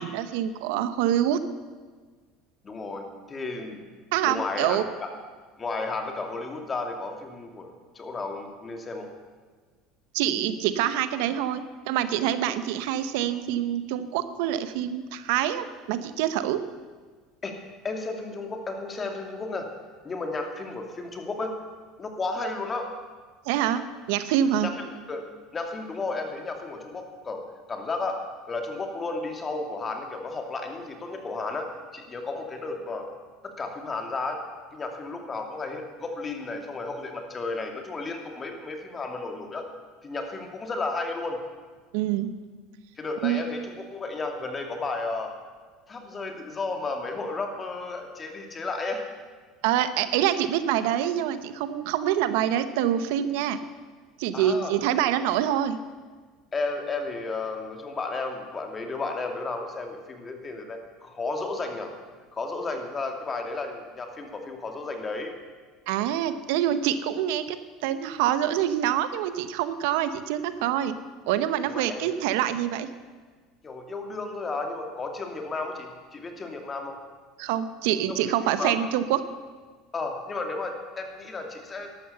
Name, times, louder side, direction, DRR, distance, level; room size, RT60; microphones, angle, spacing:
voice 1, 0.0-1.4 4.1-4.8 10.1-16.6 23.5-24.7 41.9-42.3 43.2-43.4 49.6-53.6 54.2-55.8 65.9-71.0 71.3-72.9 77.4-79.2, right 11 dB, 75° right, 12 dB, 0.8 m, -26 dB
voice 2, 2.6-3.8 4.2-5.1 5.6-9.1 17.4-19.7 20.0-21.5 22.0-22.9 24.6-25.2 25.5-27.4 27.7-33.1 33.4-34.4 34.7-39.7 40.0-41.4 43.0-45.3 45.9-49.0 54.3-55.0 56.5-61.9 62.3-65.3 71.6-72.1 73.6-77.0 78.1-78.7 79.9-82.0, left 3 dB, 25° left, 4 dB, 2.5 m, -33 dB
12.5 x 12.0 x 6.8 m, 1.5 s
supercardioid pair, 100°, 0 cm